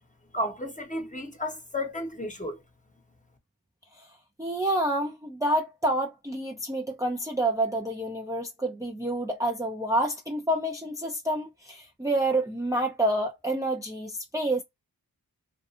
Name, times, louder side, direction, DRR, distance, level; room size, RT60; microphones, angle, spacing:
voice 1, 0.3-2.6, left 1 dB, 20° left, 1.0 m, -33 dB
voice 2, 4.4-14.6, right 1 dB, 10° right, 0.6 m, -28 dB
2.6 x 2.4 x 2.4 m
cardioid pair, 40°, 39 cm